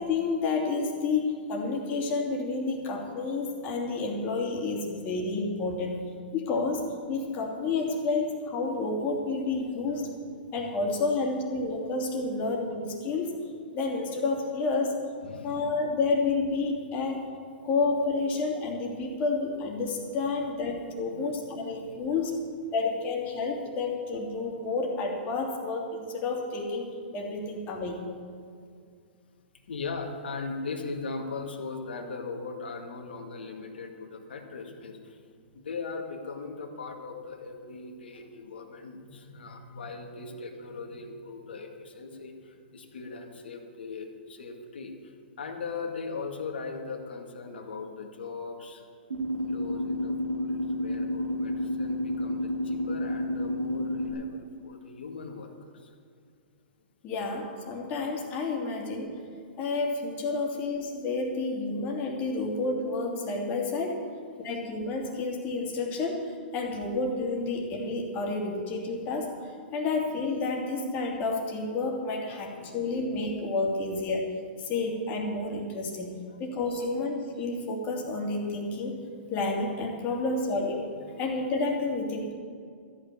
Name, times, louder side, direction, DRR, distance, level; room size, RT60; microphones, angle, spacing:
voice 1, 0.0-6.0 6.3-10.1 10.5-13.4 13.7-15.0 15.4-17.2 17.6-22.3 22.7-28.0 57.0-59.2 59.6-64.0 64.4-74.3 74.6-79.0 79.3-80.9 81.2-82.3, left 3 dB, 30° left, -1 dB, 2.9 m, -30 dB
voice 2, 15.2-15.7 21.2-21.3 21.7-22.0 29.7-35.2 35.5-48.8 49.5-55.9 64.4-64.5 72.3-72.8 76.0-76.1 76.7-76.9 79.1-79.3 80.9-81.1, left 4 dB, 75° left, 2 dB, 2.1 m, -39 dB
sound 1, 49.1-54.1, left 1 dB, 85° right, 3.4 m, -30 dB
13.5 x 6.4 x 9.8 m, 2.2 s
hypercardioid pair, 130°, 6 cm